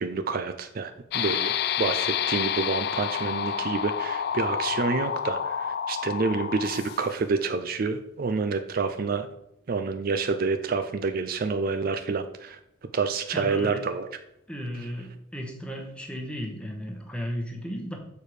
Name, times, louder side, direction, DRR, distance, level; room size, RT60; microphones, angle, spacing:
voice 1, 0.0-9.3 9.7-12.6 12.9-14.1, right 4 dB, 50° right, 8 dB, 0.4 m, -28 dB
sound 1, 1.1-7.3, left 8 dB, 55° left, 0.3 m, -29 dB
voice 2, 13.3-13.8 14.5-18.0, equal, 5° left, 2 dB, 1.1 m, -35 dB
6.8 x 4.6 x 4.8 m, 0.82 s
head